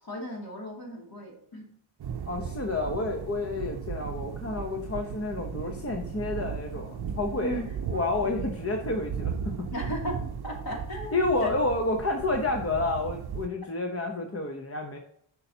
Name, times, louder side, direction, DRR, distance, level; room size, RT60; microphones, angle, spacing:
voice 1, 0.0-1.7 7.4-7.8 9.7-11.5, left 1 dB, 50° left, -1 dB, 2.6 m, -36 dB
sound 1, 2.0-13.5, right 7 dB, 55° right, 0.6 m, -36 dB
voice 2, 2.3-7.6 7.9-9.7 11.1-15.0, left 2 dB, 30° left, 3 dB, 0.8 m, -30 dB
8.5 x 5.5 x 2.8 m, 0.69 s
wide cardioid pair, 110°, 47 cm